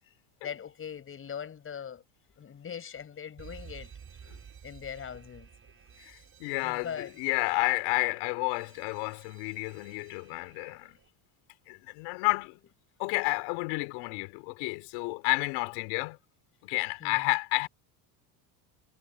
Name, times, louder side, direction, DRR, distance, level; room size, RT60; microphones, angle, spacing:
voice 1, 0.4-2.0 2.4-3.9 4.2-4.3 4.6-5.5 6.6-7.1 17.0-17.3, left 8 dB, 25° left, 7.0 m, -40 dB
Alarm, 3.4-11.1, right 7 dB, 25° right, 6.7 m, -53 dB
voice 2, 6.0-11.0 11.7-12.6 13.0-16.2 16.6-17.7, left 29 dB, 70° left, 4.7 m, -31 dB
cardioid pair, 145°, 49 cm